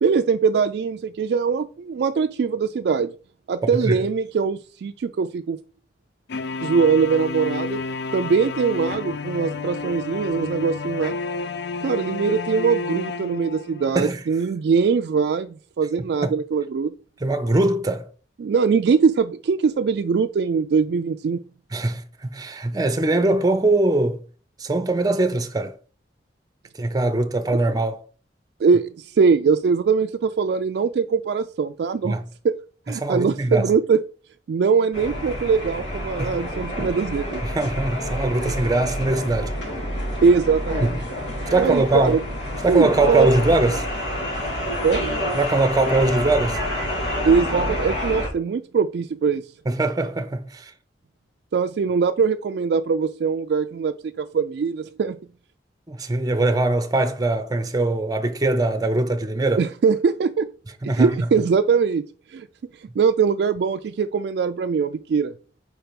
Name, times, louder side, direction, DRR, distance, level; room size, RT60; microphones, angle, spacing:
voice 1, 0.0-3.1 3.5-5.6 6.6-7.8 8.1-11.2 11.8-16.9 18.4-21.4 28.6-32.2 32.4-32.6 32.9-34.0 34.5-37.4 40.2-40.9 41.6-42.2 42.7-43.3 44.8-45.1 47.2-49.5 51.5-55.2 59.6-60.5 60.8-62.0 62.3-62.5 63.0-65.3, right 5 dB, 65° right, 0.3 m, -21 dB
sound 1, 6.3-14.0, left 4 dB, 65° left, 0.4 m, -31 dB
voice 2, 17.2-18.1 21.7-24.2 24.6-25.7 26.8-28.0 32.0-32.2 33.0-33.7 36.2-36.4 36.8-36.9 37.4-39.5 40.8-40.9 41.5-42.2 42.6-43.9 45.3-46.6 49.7-50.7 55.9-59.7 60.8-61.2, right 2 dB, 20° right, 0.6 m, -22 dB
sound 2, 34.9-48.3, equal, 80° left, 3.0 m, -28 dB
4.7 x 4.5 x 5.1 m
head